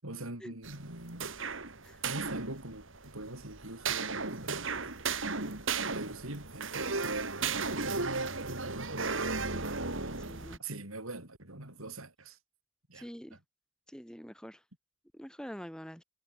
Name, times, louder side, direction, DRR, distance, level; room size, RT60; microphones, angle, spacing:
voice 1, 0.0-1.3 2.0-4.9 5.9-9.1 10.6-12.4 12.9-13.4, right 2 dB, 85° right, 7.1 m, -43 dB
sound 1, 0.6-10.6, right 4 dB, 65° right, 3.7 m, -35 dB
voice 2, 10.3-10.6 12.9-13.4 13.9-14.6 15.1-16.0, equal, 5° left, 4.3 m, -45 dB
head